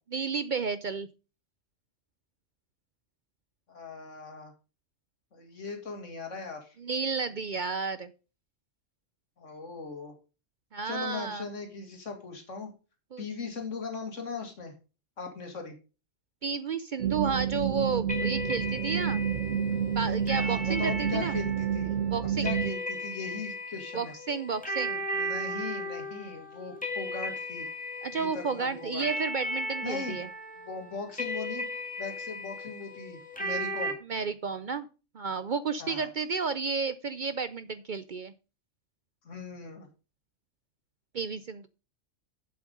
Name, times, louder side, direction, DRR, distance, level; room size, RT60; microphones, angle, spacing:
voice 1, 0.1-1.1 6.8-8.1 10.7-11.5 13.1-13.2 16.4-19.2 19.9-21.4 22.1-22.5 23.9-25.1 28.0-30.3 34.1-34.9 35.1-38.3 41.1-41.7, right 5 dB, 55° right, 13 dB, 0.6 m, -32 dB
voice 2, 3.7-4.5 5.3-6.8 9.4-10.1 10.8-12.7 13.2-14.7 15.2-15.7 20.3-21.9 22.4-24.1 25.1-27.7 28.1-29.1 29.8-30.2 30.6-31.7 32.0-34.0 35.8-36.1 39.2-39.9, left 4 dB, 80° left, 4 dB, 2.4 m, -39 dB
sound 1, 17.0-22.7, right 8 dB, 85° right, 1.2 m, -29 dB
sound 2, 18.1-33.9, equal, 5° left, 2.1 m, -36 dB
7.9 x 7.4 x 5.2 m, 0.33 s
omnidirectional pair, 1.3 m